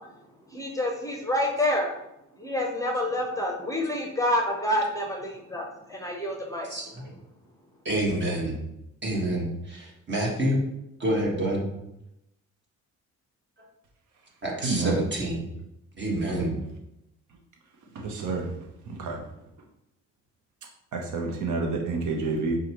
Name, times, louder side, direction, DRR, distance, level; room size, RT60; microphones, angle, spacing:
voice 1, 0.5-1.9 2.4-6.7, left 1 dB, 10° left, 0 dB, 0.7 m, -28 dB
voice 2, 6.7-7.1 7.8-8.6 9.0-10.6 11.0-11.7 14.4-15.5 16.0-16.6, right 1 dB, 35° right, -2 dB, 1.5 m, -27 dB
voice 3, 14.6-15.0 17.9-19.2 20.9-22.6, right 3 dB, 75° right, 1 dB, 0.8 m, -29 dB
6.3 x 2.3 x 2.9 m, 0.85 s
cardioid pair, 90°, 30 cm